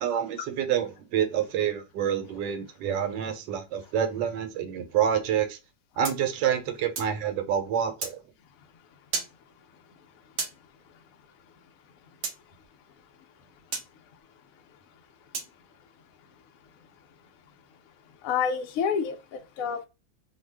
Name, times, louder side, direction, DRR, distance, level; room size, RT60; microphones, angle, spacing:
voice 1, 0.0-5.6 6.0-8.2, right 9 dB, 90° right, 1.3 m, -27 dB
sound 1, 6.0-7.2 8.0-8.2 9.1-9.3 10.4-10.6 12.2-12.4 13.7-13.9 15.3-15.5, right 4 dB, 65° right, 0.6 m, -33 dB
voice 2, 18.2-19.8, left 6 dB, 70° left, 0.8 m, -28 dB
3.0 x 2.2 x 3.3 m
omnidirectional pair, 1.9 m